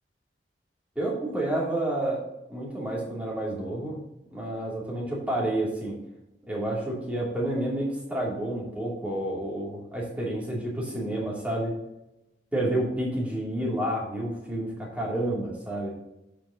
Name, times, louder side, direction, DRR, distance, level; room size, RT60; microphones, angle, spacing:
voice 1, 0.9-2.2 2.5-4.0 4.3-5.9 6.5-11.8 12.5-15.9, right 1 dB, 10° right, -5 dB, 2.8 m, -29 dB
13.5 x 5.2 x 2.9 m, 0.90 s
head